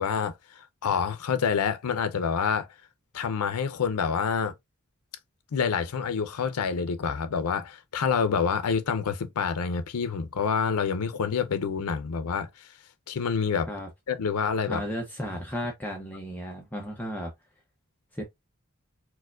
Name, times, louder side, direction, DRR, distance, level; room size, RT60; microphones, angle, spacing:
voice 1, 0.0-2.7 3.1-4.5 5.5-12.5 13.1-13.7 14.1-14.8, left 6 dB, 90° left, 0.5 m, -27 dB
voice 2, 14.7-17.3 18.1-18.2, equal, 10° left, 0.6 m, -34 dB
4.5 x 2.1 x 2.3 m
head